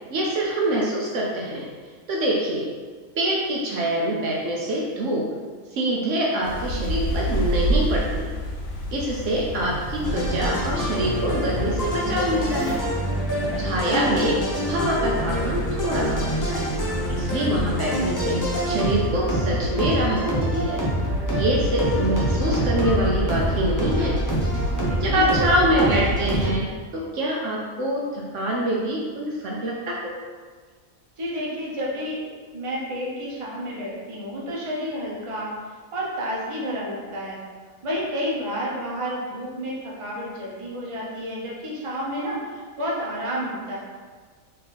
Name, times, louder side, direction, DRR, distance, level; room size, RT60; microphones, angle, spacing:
voice 1, 0.1-1.7 2.1-2.7 3.2-5.3 5.7-8.3 8.9-12.8 13.6-16.7 17.1-20.8 21.2-24.2 25.0-30.1, right 1 dB, 65° right, -2 dB, 0.9 m, -25 dB
sound 1, 6.4-12.8, right 1 dB, 70° left, 1.1 m, -28 dB
sound 2, 10.0-26.5, equal, 25° left, 0.4 m, -25 dB
voice 2, 13.5-14.1 24.9-26.1 31.2-32.2 32.5-35.5 35.9-37.4 37.8-43.8, equal, 30° right, -5 dB, 0.7 m, -30 dB
3.9 x 2.8 x 3.9 m, 1.5 s
omnidirectional pair, 1.4 m